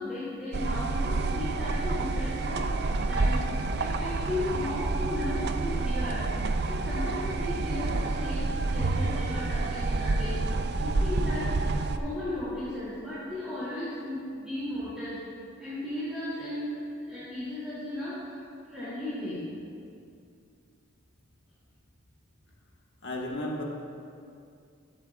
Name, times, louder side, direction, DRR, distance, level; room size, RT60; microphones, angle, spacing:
voice 1, 0.0-3.4 3.7-6.2 6.6-11.5 11.9-15.2 15.6-19.4, left 1 dB, 5° right, -13 dB, 2.7 m, -35 dB
sound 1, 0.5-12.0, right 3 dB, 50° right, 0.4 m, -28 dB
voice 2, 23.0-23.6, left 1 dB, 55° left, -1 dB, 1.4 m, -33 dB
12.5 x 12.5 x 2.4 m, 2.4 s
head